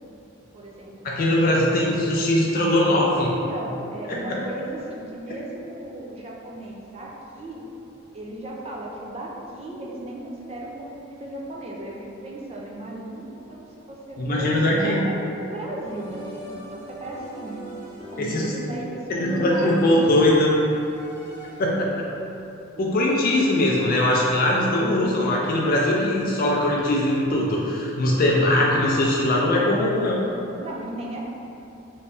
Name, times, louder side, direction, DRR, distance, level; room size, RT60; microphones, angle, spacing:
voice 1, 0.5-1.1 1.4-1.5 3.3-7.6 8.1-17.6 18.1-20.1 21.5-21.6 30.6-31.2, right 1 dB, 30° right, -3 dB, 0.4 m, -36 dB
voice 2, 1.0-3.3 4.1-4.4 14.2-15.0 18.2-18.4 19.1-20.5 21.6-22.1 22.8-30.2, left 1 dB, 45° left, -3 dB, 0.3 m, -21 dB
sound 1, 15.8-21.9, right 1 dB, 10° left, 0.8 m, -42 dB
3.1 x 2.6 x 3.4 m, 2.8 s
head